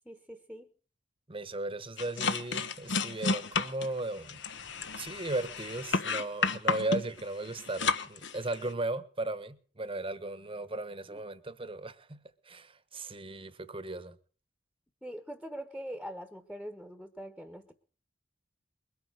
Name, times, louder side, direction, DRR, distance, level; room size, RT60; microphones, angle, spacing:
voice 1, 0.0-0.7 11.1-11.2 15.0-17.7, equal, ahead, 1.3 m, -43 dB
voice 2, 1.3-4.4 5.0-14.2, right 2 dB, 30° right, 1.2 m, -36 dB
sound 1, 2.0-8.7, left 4 dB, 70° left, 1.3 m, -32 dB
22.0 x 9.6 x 6.4 m
head